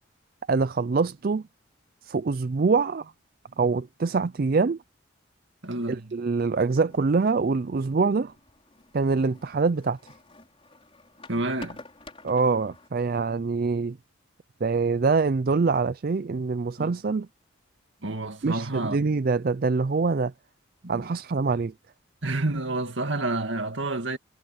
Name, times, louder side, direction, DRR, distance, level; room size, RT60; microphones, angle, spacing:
voice 1, 0.5-1.5 2.0-3.1 3.6-4.8 5.9-8.3 8.9-10.1 12.2-14.0 14.6-17.3 18.4-20.3 20.9-21.7, right 4 dB, 45° right, 0.4 m, -24 dB
voice 2, 5.6-6.1 11.3-11.8 16.8-16.9 18.0-19.1 20.8-21.1 22.2-24.2, right 2 dB, 65° right, 2.2 m, -29 dB
sound 1, 6.6-12.9, left 2 dB, 25° left, 4.3 m, -49 dB
head